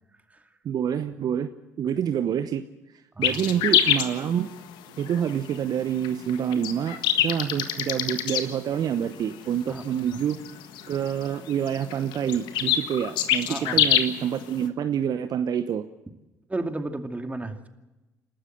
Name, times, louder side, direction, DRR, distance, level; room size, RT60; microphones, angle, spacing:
voice 1, 0.6-1.5 1.8-2.6 3.2-4.5 5.0-10.4 10.9-15.8, right 9 dB, 50° right, 10 dB, 0.9 m, -27 dB
sound 1, 3.2-14.7, left 10 dB, 65° left, 1.6 m, -26 dB
voice 2, 3.2-3.5 9.7-10.2 13.5-13.8 16.5-17.7, right 2 dB, 20° right, 5 dB, 2.4 m, -34 dB
28.5 x 13.0 x 7.7 m, 1.1 s
hypercardioid pair, 50°, 8 cm